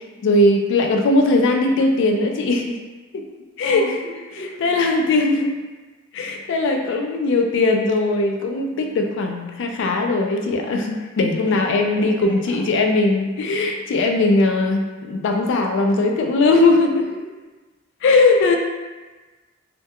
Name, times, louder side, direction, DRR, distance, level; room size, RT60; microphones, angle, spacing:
voice 1, 0.2-2.8 3.1-3.2 3.6-3.8 4.6-5.5 6.1-17.1 18.0-18.6, left 2 dB, 60° left, 3 dB, 0.3 m, -19 dB
voice 2, 3.6-4.6 6.7-6.8 11.5-12.6, equal, 10° left, -10 dB, 0.8 m, -35 dB
2.2 x 2.2 x 2.7 m, 1.2 s
head